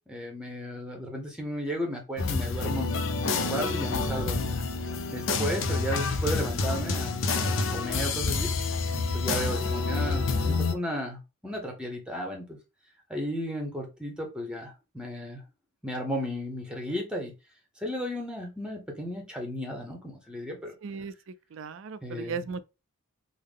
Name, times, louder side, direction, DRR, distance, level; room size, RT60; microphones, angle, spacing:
voice 1, 0.1-4.6 5.1-8.5 9.1-12.6 13.1-15.4 15.8-17.3 17.8-20.7 22.0-22.4, equal, 5° right, 0.8 m, -34 dB
sound 1, 2.2-10.7, left 4 dB, 60° left, 0.5 m, -28 dB
voice 2, 20.8-21.1 21.5-22.6, right 5 dB, 60° right, 0.3 m, -36 dB
3.6 x 2.1 x 3.4 m
head